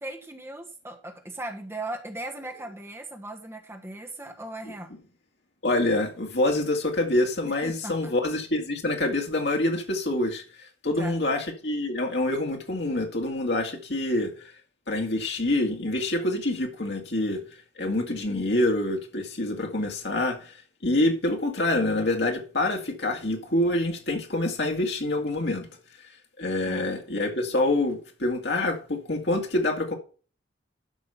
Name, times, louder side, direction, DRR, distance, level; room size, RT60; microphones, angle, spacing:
voice 1, 0.0-4.9 7.4-8.1 11.0-11.2 26.6-26.9, right 1 dB, 15° right, 1.2 m, -38 dB
voice 2, 5.6-14.5 14.9-17.4 17.8-20.6 20.8-25.7 26.4-30.0, left 1 dB, 65° left, 2.3 m, -26 dB
12.5 x 5.2 x 5.6 m
head